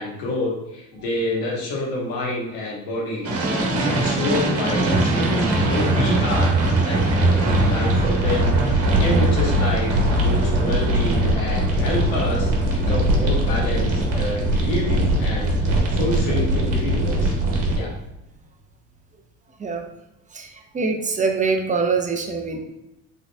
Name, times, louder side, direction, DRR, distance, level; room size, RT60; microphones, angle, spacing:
voice 1, 0.0-3.3 3.8-9.9 10.2-17.3 17.7-17.9, left 1 dB, 75° left, -2 dB, 1.1 m, -28 dB
sound 1, 3.2-17.8, right 1 dB, 40° right, 1.3 m, -20 dB
voice 2, 20.7-22.6, right 4 dB, 20° right, 4 dB, 0.6 m, -23 dB
3.8 x 3.7 x 2.2 m, 0.90 s
supercardioid pair, 85°, 35 cm